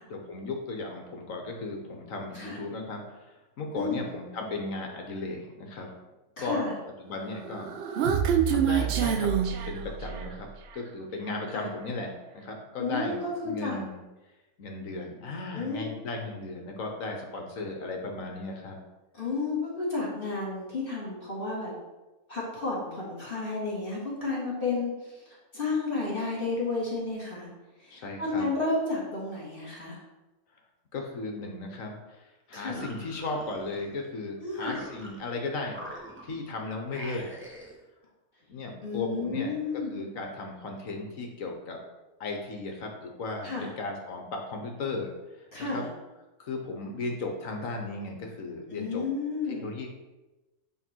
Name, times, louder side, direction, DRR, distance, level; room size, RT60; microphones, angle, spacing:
voice 1, 0.0-5.9 6.4-6.6 7.0-7.7 8.0-8.2 8.5-14.0 14.6-18.8 27.9-28.4 30.9-35.8 36.2-37.3 38.5-39.5 39.9-41.8 42.2-45.8 46.4-49.0 49.5-49.9, left 3 dB, 65° left, 2 dB, 1.3 m, -36 dB
voice 2, 3.7-4.1 6.4-6.7 11.5-11.7 12.8-13.8 15.5-15.9 19.1-21.7 22.3-27.5 27.8-30.0 32.5-32.8 34.4-34.8 38.8-40.1 43.4-43.7 45.5-45.9 48.7-49.7, left 3 dB, 35° left, -5 dB, 2.3 m, -32 dB
Human voice, 7.4-10.4, right 8 dB, 65° right, 0.6 m, -26 dB
sound 1, 32.5-34.1 34.5-35.4 35.7-36.5 36.9-37.8, equal, 10° right, 1.0 m, -44 dB
8.3 x 3.5 x 4.5 m, 1.1 s
omnidirectional pair, 1.6 m